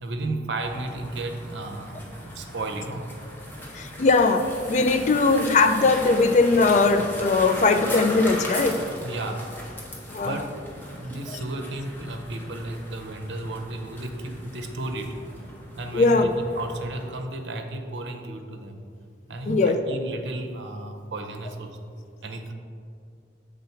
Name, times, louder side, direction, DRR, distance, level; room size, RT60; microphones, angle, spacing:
voice 1, 0.0-2.0 2.3-3.1 5.0-5.2 9.0-9.5 10.2-15.2 15.8-16.3 16.5-18.8 19.3-21.8 22.2-22.5, right 2 dB, 75° right, 5 dB, 0.6 m, -33 dB
sound 1, 0.6-17.1, equal, 10° left, 0.8 m, -38 dB
voice 2, 3.7-8.8 10.1-10.4 15.9-16.3 19.5-19.8, left 3 dB, 40° left, 8 dB, 0.3 m, -20 dB
7.0 x 3.8 x 4.4 m, 2.4 s
head